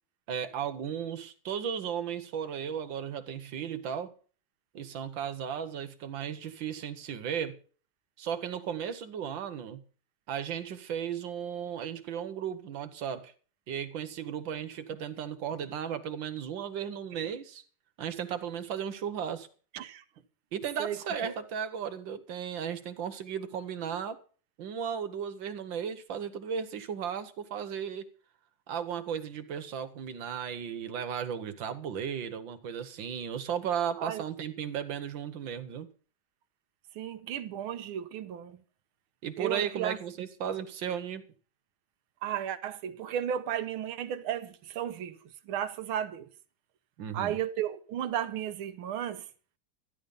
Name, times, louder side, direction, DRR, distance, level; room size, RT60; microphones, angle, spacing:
voice 1, 0.3-4.1 4.7-7.6 8.2-9.8 10.3-13.3 13.7-17.6 18.0-19.5 20.5-24.2 24.6-28.1 28.7-35.9 39.2-41.2 47.0-47.4, right 8 dB, 65° right, 1.7 m, -35 dB
voice 2, 20.8-21.4 34.0-34.2 36.9-38.6 39.4-40.0 42.2-45.2 45.5-46.3 47.1-49.3, right 10 dB, 85° right, 1.7 m, -34 dB
13.0 x 11.0 x 5.3 m
omnidirectional pair, 2.3 m